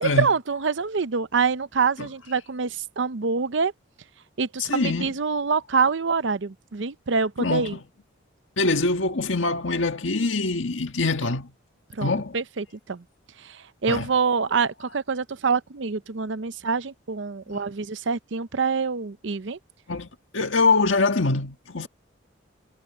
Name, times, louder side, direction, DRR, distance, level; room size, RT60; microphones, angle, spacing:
voice 1, 0.0-3.7 4.4-7.8 11.9-13.0 13.4-19.6, right 5 dB, 70° right, 0.7 m, -26 dB
voice 2, 4.7-5.1 7.4-7.8 8.6-11.5 12.0-12.4 13.9-14.1 17.5-17.6 19.9-20.1 20.3-21.9, left 3 dB, 85° left, 1.6 m, -24 dB
head